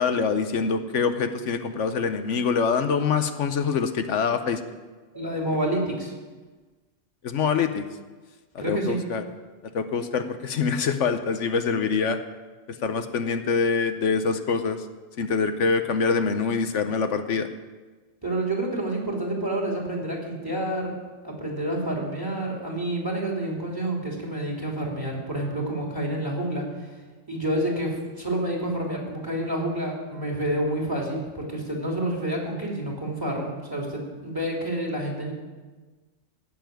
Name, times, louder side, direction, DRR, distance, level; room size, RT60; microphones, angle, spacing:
voice 1, 0.0-4.6 7.2-7.8 8.7-9.2 9.7-12.2 12.7-14.8 15.2-17.5, left 5 dB, 75° left, 9 dB, 1.2 m, -25 dB
voice 2, 5.1-6.1 8.6-9.0 18.2-20.9 21.2-26.6 27.3-35.3, right 1 dB, 15° right, -2 dB, 3.2 m, -28 dB
15.0 x 7.0 x 9.2 m, 1.3 s
omnidirectional pair, 1.3 m